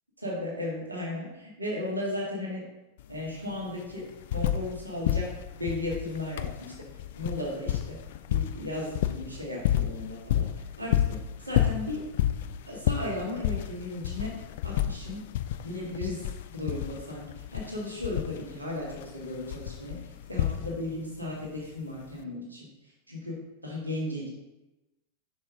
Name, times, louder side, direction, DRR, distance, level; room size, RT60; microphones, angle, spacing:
voice 1, 0.2-2.6 3.1-4.1 4.3-5.3 5.6-6.7 7.2-8.0 8.3-10.5 10.8-12.0 12.7-14.3 14.6-15.2 15.6-20.0 20.3-22.7 23.1-24.3, left 1 dB, 80° right, -4 dB, 1.9 m, -35 dB
sound 1, 3.0-3.1 3.3-4.8 5.0-21.0 22.1-22.2, left 11 dB, 55° left, 0.4 m, -30 dB
6.9 x 5.9 x 3.7 m, 0.99 s
figure-of-eight pair, 90°, 0 cm